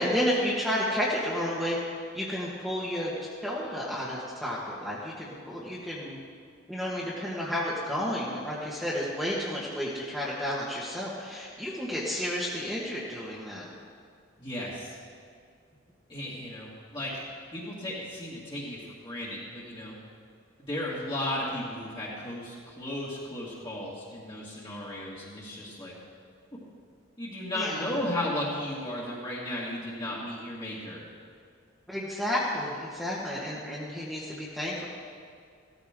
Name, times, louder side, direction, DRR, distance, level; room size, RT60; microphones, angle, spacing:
voice 1, 0.0-1.8 2.1-3.1 3.4-6.2 6.7-13.7 27.5-28.0 31.9-34.9, equal, ahead, -8 dB, 1.6 m, -31 dB
voice 2, 14.4-15.0 16.1-18.8 19.0-20.0 20.7-25.9 27.2-31.0, left 1 dB, 20° left, -7 dB, 2.1 m, -35 dB
16.0 x 14.0 x 3.7 m, 2.2 s
head